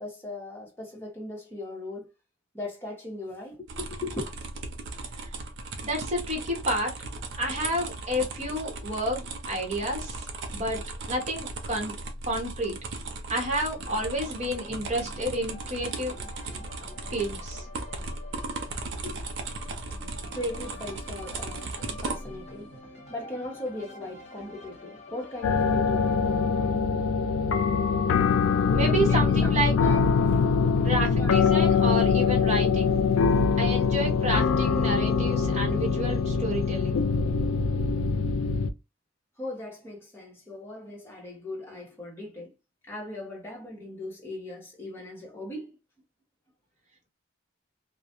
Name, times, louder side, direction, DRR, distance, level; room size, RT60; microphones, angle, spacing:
voice 1, 0.0-2.1 2.5-4.2 19.0-19.2 20.3-21.7 22.0-22.7 23.1-27.0 28.0-28.2 28.5-28.8 29.1-30.0 30.3-30.9 31.1-31.3 39.4-42.5 42.8-45.8, left 2 dB, 10° left, 0.9 m, -38 dB
sound 1, 3.7-22.4, right 3 dB, 60° right, 0.4 m, -37 dB
voice 2, 5.8-6.9 7.3-10.3 10.5-11.9 12.2-12.8 13.3-16.1 17.1-17.7 28.7-29.8 30.8-32.9 33.6-37.0, right 1 dB, 35° right, 1.0 m, -30 dB
sound 2, 13.7-26.7, left 1 dB, 35° left, 1.2 m, -47 dB
sound 3, 25.4-38.7, left 5 dB, 80° left, 0.3 m, -23 dB
2.3 x 2.1 x 2.8 m
head